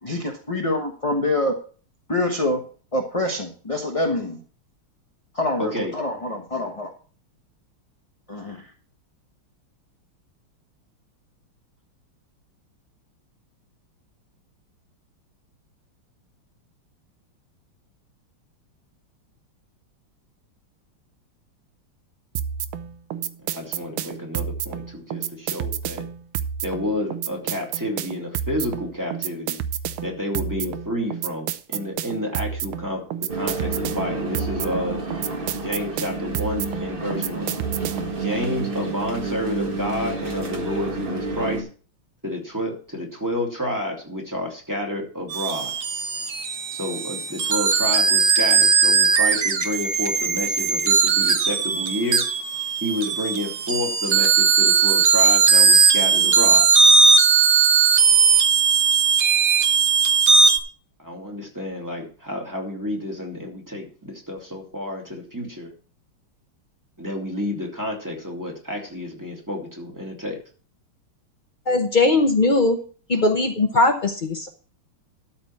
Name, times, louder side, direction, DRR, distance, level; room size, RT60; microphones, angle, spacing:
voice 1, 0.0-1.6 2.1-2.6 2.9-4.4 5.3-6.9 8.3-8.7, left 1 dB, 25° left, 3 dB, 0.8 m, -25 dB
voice 2, 5.6-5.9 23.4-26.0 26.6-29.6 30.0-35.0 35.6-37.5 38.2-41.6 42.2-45.7 46.7-52.2 52.8-56.7 61.0-65.7 67.0-70.4, left 1 dB, 10° right, 0 dB, 2.2 m, -30 dB
sound 1, 22.4-38.2, right 9 dB, 85° right, 1.6 m, -30 dB
sound 2, 33.3-41.6, right 3 dB, 30° right, 1.5 m, -30 dB
sound 3, 45.3-60.6, right 5 dB, 45° right, 0.9 m, -18 dB
voice 3, 71.7-72.8 73.1-74.5, left 2 dB, 75° left, 5 dB, 0.4 m, -19 dB
13.0 x 4.3 x 7.1 m, 0.40 s
omnidirectional pair, 2.3 m